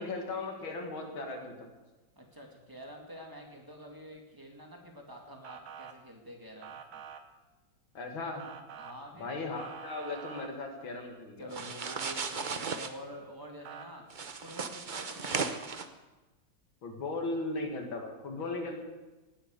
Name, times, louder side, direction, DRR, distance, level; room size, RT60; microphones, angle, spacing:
voice 1, 0.0-1.7 7.9-8.4 9.2-11.5 16.8-18.8, left 3 dB, 90° left, 2 dB, 2.7 m, -37 dB
voice 2, 2.2-7.0 8.8-9.4 11.4-14.0 14.4-15.5 18.4-18.8, equal, 10° right, 1 dB, 2.3 m, -48 dB
Motor vehicle (road) / Siren, 5.4-5.9 6.6-7.2 8.4-8.9 9.6-10.5 11.8-12.1 13.6-13.9, right 8 dB, 90° right, 1.9 m, -46 dB
sound 1, 11.5-12.9 14.1-15.9, right 5 dB, 50° right, 0.6 m, -36 dB
18.5 x 9.0 x 6.7 m, 1.1 s
omnidirectional pair, 2.1 m